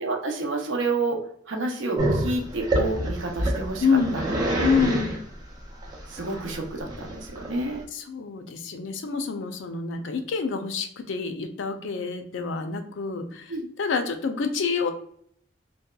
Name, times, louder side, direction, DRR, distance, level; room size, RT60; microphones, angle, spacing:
voice 1, 0.0-1.2 1.5-3.9 4.1-4.4 6.1-7.8 13.5-13.7, right 3 dB, 75° right, 2 dB, 0.6 m, -29 dB
Growling, 2.0-7.8, right 1 dB, 20° right, 0.4 m, -27 dB
voice 2, 3.8-4.2 4.6-5.1 7.9-14.9, left 5 dB, 75° left, 6 dB, 0.4 m, -27 dB
2.7 x 2.2 x 2.2 m, 0.64 s
head